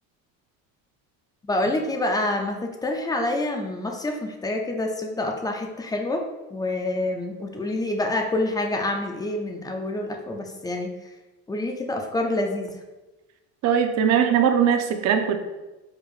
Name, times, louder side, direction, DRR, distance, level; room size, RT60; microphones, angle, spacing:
voice 1, 1.4-6.2 6.5-10.9 11.5-12.8, left 2 dB, 10° left, 3 dB, 0.4 m, -27 dB
voice 2, 13.6-15.4, right 8 dB, 50° right, 7 dB, 0.6 m, -20 dB
4.7 x 4.7 x 2.4 m, 1.1 s
cardioid pair, 130°, 34 cm